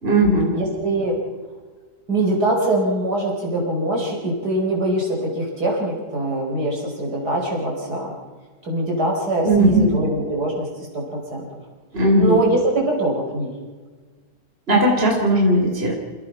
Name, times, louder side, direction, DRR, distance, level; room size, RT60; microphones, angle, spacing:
voice 1, 0.0-0.5 9.4-10.0 11.9-12.3 14.7-15.9, right 1 dB, 35° right, 0 dB, 4.0 m, -17 dB
voice 2, 0.5-1.2 2.1-8.1 8.6-11.5 12.2-13.5, right 1 dB, 65° right, -1 dB, 5.6 m, -23 dB
29.0 x 18.0 x 5.8 m, 1.5 s
omnidirectional pair, 1.9 m